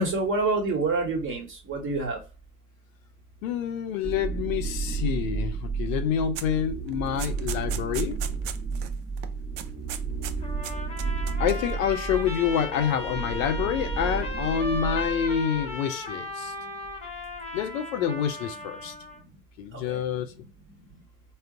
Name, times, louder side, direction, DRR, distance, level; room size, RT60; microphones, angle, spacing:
voice 1, 0.0-2.2 19.8-20.0, right 3 dB, 25° right, 1.1 m, -27 dB
voice 2, 3.4-8.2 11.4-16.5 17.5-18.9 19.6-20.3, left 8 dB, 60° left, 0.6 m, -27 dB
sound 1, 4.0-15.8, right 5 dB, 10° right, 0.6 m, -32 dB
sound 2, 6.4-6.6 6.9-8.9 9.2-9.3 9.6-10.3 10.6-11.7, right 10 dB, 55° right, 0.5 m, -37 dB
Trumpet, 10.4-19.2, left 2 dB, 15° left, 0.9 m, -36 dB
3.8 x 2.0 x 2.4 m
hypercardioid pair, 95°, 46 cm